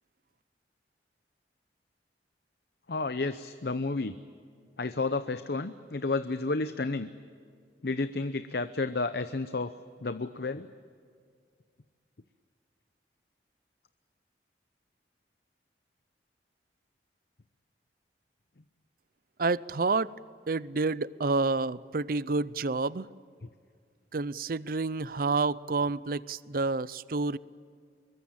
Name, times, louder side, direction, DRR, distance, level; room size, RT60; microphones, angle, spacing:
voice 1, 2.9-4.1 4.8-7.1 7.8-9.7 10.0-10.7, left 3 dB, 60° left, 11 dB, 0.7 m, -31 dB
voice 2, 19.4-20.1 20.5-23.1 24.1-27.4, right 3 dB, 55° right, 19 dB, 0.6 m, -29 dB
25.5 x 21.5 x 8.8 m, 2.2 s
head